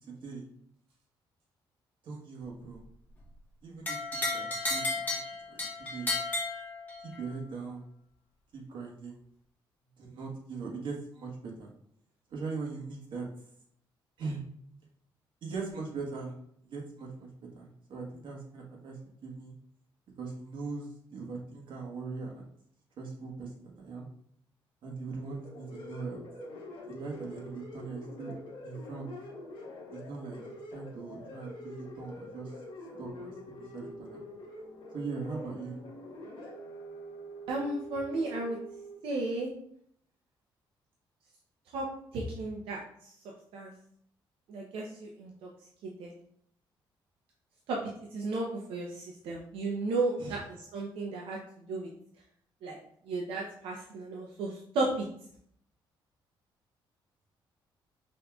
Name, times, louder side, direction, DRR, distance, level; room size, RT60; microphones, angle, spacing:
voice 1, 2.0-2.8 3.6-5.2 5.5-6.1 7.0-7.8 8.5-9.2 10.0-11.3 11.6-11.7 12.3-13.3 14.2-14.4 15.4-16.3 16.6-17.3 17.5-19.5 20.2-22.5 23.0-24.1 24.8-26.2 26.9-28.3 28.6-29.1 29.9-30.4 30.7-32.5 33.0-33.3 33.7-34.2 34.9-35.8 50.2-50.4, right 4 dB, 65° right, -1 dB, 1.3 m, -40 dB
sound 1, 3.9-7.2, left 2 dB, 20° left, 1.3 m, -33 dB
sound 2, 25.2-38.9, equal, 70° left, 1.3 m, -45 dB
voice 2, 37.5-38.6 39.0-39.5 41.7-41.9 42.1-43.1 43.5-43.7 44.5-45.3 46.0-46.1 47.7-47.8 48.1-50.4 50.7-51.4 51.7-51.9 52.6-52.8 53.1-55.0, right 2 dB, 90° right, -2 dB, 0.7 m, -33 dB
5.1 x 3.7 x 2.3 m, 0.67 s
cardioid pair, 110°, 9 cm